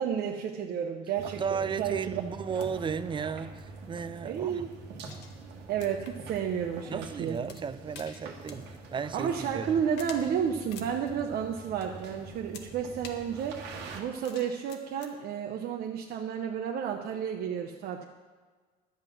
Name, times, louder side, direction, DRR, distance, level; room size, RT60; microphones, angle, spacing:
voice 1, 0.0-2.2 4.2-4.7 5.7-7.4 9.1-13.6 13.9-18.1, right 8 dB, 65° right, 2 dB, 0.8 m, -32 dB
sound 1, 1.1-14.0, right 3 dB, 85° right, 1.7 m, -45 dB
voice 2, 1.2-4.6 6.9-9.8, right 6 dB, 30° right, 14 dB, 0.5 m, -34 dB
sound 2, 2.6-15.2, left 6 dB, 85° left, 1.1 m, -52 dB
11.0 x 7.8 x 6.1 m, 1.4 s
cardioid pair, 110°, 17 cm